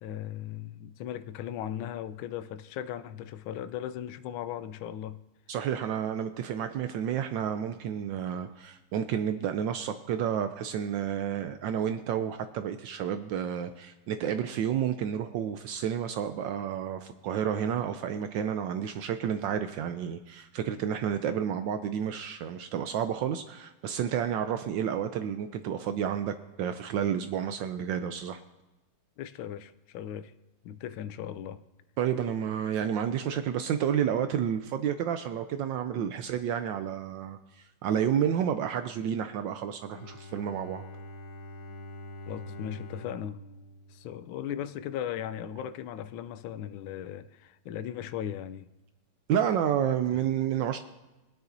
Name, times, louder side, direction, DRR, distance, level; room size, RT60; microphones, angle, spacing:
voice 1, 0.0-5.2 29.2-30.3 30.6-31.6 33.3-33.4 36.0-36.1 42.3-43.4 43.9-48.7 50.1-50.2, left 10 dB, 75° left, 1.3 m, -37 dB
voice 2, 5.5-28.4 32.0-40.8 49.3-50.8, right 9 dB, 75° right, 1.1 m, -30 dB
Bowed string instrument, 39.9-44.9, left 1 dB, 60° left, 1.9 m, -45 dB
21.0 x 9.6 x 2.6 m
omnidirectional pair, 2.4 m